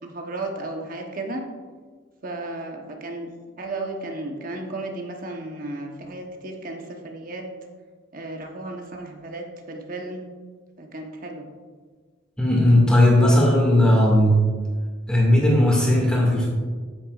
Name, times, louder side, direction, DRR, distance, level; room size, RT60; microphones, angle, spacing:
voice 1, 0.0-1.4 2.2-3.3 3.6-7.5 8.1-10.2 10.8-11.5, right 2 dB, 45° right, 2 dB, 1.0 m, -34 dB
voice 2, 12.4-14.4 15.1-16.5, left 1 dB, 5° left, -3 dB, 2.0 m, -17 dB
9.2 x 8.7 x 2.4 m, 1.5 s
head